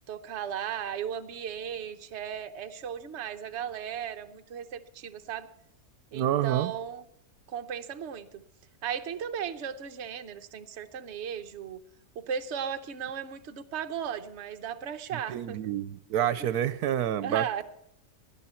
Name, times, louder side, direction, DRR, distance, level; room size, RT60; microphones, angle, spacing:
voice 1, 0.1-5.5 6.1-7.0 7.5-8.4 8.8-11.8 12.1-15.6 16.4-16.5 17.2-17.6, right 8 dB, 55° right, 7 dB, 1.0 m, -36 dB
voice 2, 6.1-6.7 15.3-17.6, right 11 dB, 80° right, 15 dB, 1.2 m, -28 dB
17.5 x 11.0 x 4.3 m, 0.82 s
omnidirectional pair, 1.6 m